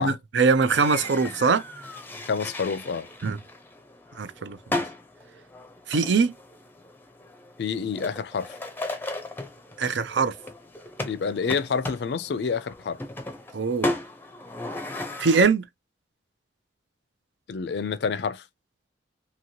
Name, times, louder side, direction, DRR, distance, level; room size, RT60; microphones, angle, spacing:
voice 1, 0.0-1.6 3.2-3.4 4.2-4.8 5.9-6.3 9.8-10.3 13.5-14.0 15.2-15.6, right 4 dB, 80° right, 0.5 m, -22 dB
sound 1, 0.7-15.4, left 2 dB, 10° left, 0.5 m, -36 dB
voice 2, 2.3-3.1 7.6-8.5 11.0-13.0 17.5-18.4, left 5 dB, 65° left, 0.4 m, -28 dB
2.9 x 2.8 x 2.7 m
head